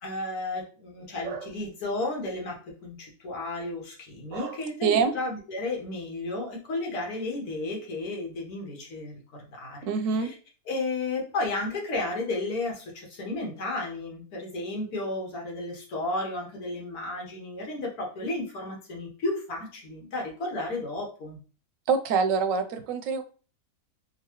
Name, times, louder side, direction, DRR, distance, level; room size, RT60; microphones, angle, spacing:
voice 1, 0.0-9.8 10.1-10.3 10.7-21.4, left 2 dB, 85° left, -1 dB, 1.6 m, -33 dB
voice 2, 4.8-5.1 9.8-10.3 21.9-23.2, right 5 dB, 70° right, 9 dB, 0.9 m, -25 dB
3.8 x 2.6 x 2.9 m, 0.37 s
omnidirectional pair, 1.5 m